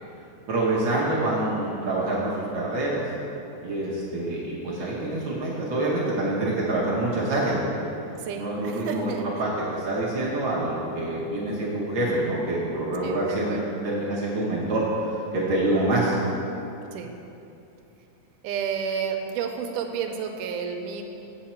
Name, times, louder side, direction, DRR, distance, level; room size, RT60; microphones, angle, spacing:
voice 1, 0.5-3.1 3.6-7.7 8.4-9.1 9.4-13.6 13.8-16.2, right 2 dB, 65° right, -6 dB, 1.2 m, -26 dB
voice 2, 8.2-9.2 13.0-13.8 16.9-17.1 18.4-21.0, right 7 dB, 85° right, 3 dB, 2.1 m, -31 dB
8.3 x 7.5 x 4.3 m, 2.8 s
omnidirectional pair, 3.7 m